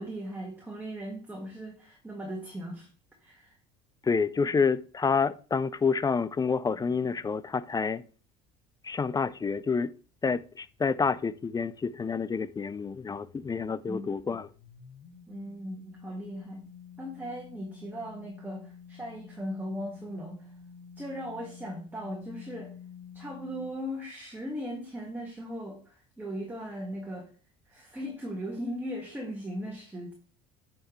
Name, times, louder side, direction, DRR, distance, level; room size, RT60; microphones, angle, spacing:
voice 1, 0.0-2.9 3.2-3.6 13.9-14.2 15.3-16.7 17.0-20.5 21.0-22.7 23.1-27.3 27.7-30.1, equal, 10° right, 1.7 m, -38 dB
voice 2, 4.0-8.0 8.8-9.9 10.2-14.5, left 5 dB, 20° left, 0.4 m, -28 dB
sound 1, 10.2-13.7 14.2-23.7, left 7 dB, 60° left, 1.3 m, -51 dB
8.5 x 5.8 x 3.2 m
supercardioid pair, 95°, 21 cm